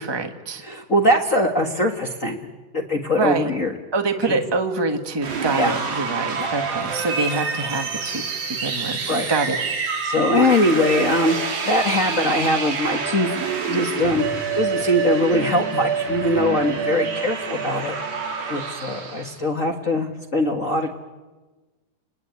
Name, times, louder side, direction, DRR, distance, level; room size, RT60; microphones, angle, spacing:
voice 1, 0.0-0.6 3.2-3.5 3.9-8.2 8.6-9.0 9.3-9.6, right 3 dB, 15° right, 5 dB, 0.7 m, -25 dB
voice 2, 0.6-2.4 2.7-3.7 4.2-4.4 5.5-5.7 6.4-6.5 9.1-9.3 10.0-11.4 11.7-13.4 13.6-14.3 14.5-17.9 18.5-20.9, left 1 dB, 40° left, 3 dB, 1.1 m, -21 dB
sound 1, 5.2-19.4, right 5 dB, 85° right, 4.9 m, -27 dB
30.0 x 20.5 x 9.4 m, 1.2 s
omnidirectional pair, 4.0 m